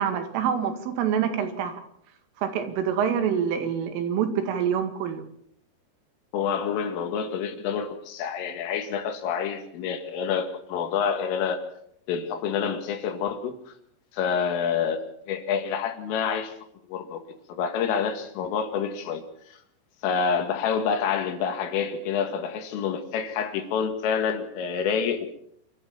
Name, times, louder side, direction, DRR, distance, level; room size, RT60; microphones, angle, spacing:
voice 1, 0.0-1.8 2.4-5.3, right 8 dB, 85° right, 7 dB, 4.6 m, -26 dB
voice 2, 6.3-11.6 12.1-13.5 14.1-15.0 15.3-16.5 16.9-17.2 17.5-19.2 20.0-25.3, left 7 dB, 90° left, 7 dB, 4.7 m, -27 dB
26.5 x 13.5 x 7.2 m, 0.70 s
omnidirectional pair, 5.6 m